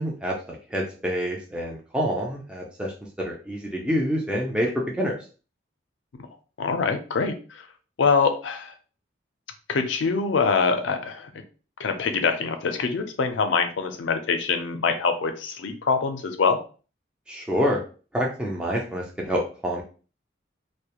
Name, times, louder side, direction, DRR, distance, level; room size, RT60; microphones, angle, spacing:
voice 1, 0.0-2.9 3.2-4.7 5.0-5.1 17.3-17.8 18.1-19.8, equal, 5° right, -2 dB, 0.3 m, -27 dB
voice 2, 6.6-7.3 8.0-8.7 9.7-11.3 11.8-16.6, left 5 dB, 75° left, 7 dB, 0.4 m, -24 dB
2.3 x 2.1 x 2.8 m, 0.38 s
head